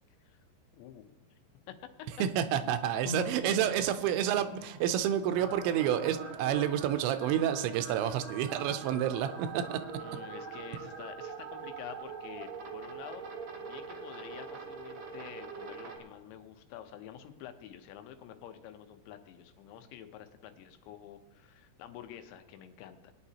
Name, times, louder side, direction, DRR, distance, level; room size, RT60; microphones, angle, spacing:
voice 1, 0.7-1.1 1.7-2.1 3.6-3.8 10.0-13.3 13.6-23.1, left 10 dB, 85° left, 8 dB, 3.2 m, -48 dB
voice 2, 2.2-9.8, right 10 dB, 85° right, 10 dB, 3.0 m, -29 dB
sound 1, 3.1-15.5 15.7-16.7 17.1-17.2, left 3 dB, 70° left, 2.2 m, -50 dB
sound 2, 5.3-16.0, right 5 dB, 70° right, 1.6 m, -43 dB
20.5 x 9.8 x 2.9 m, 1.1 s
omnidirectional pair, 5.1 m